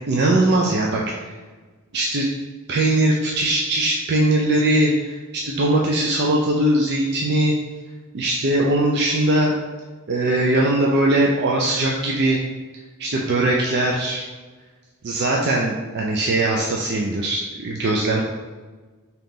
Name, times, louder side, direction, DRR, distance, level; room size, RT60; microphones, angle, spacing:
voice 1, 0.1-1.3 1.9-2.3 2.7-7.5 8.1-9.5 10.1-12.4 13.0-14.3 15.0-18.2, right 1 dB, 50° right, -2 dB, 0.4 m, -20 dB
3.7 x 2.9 x 3.8 m, 1.3 s
head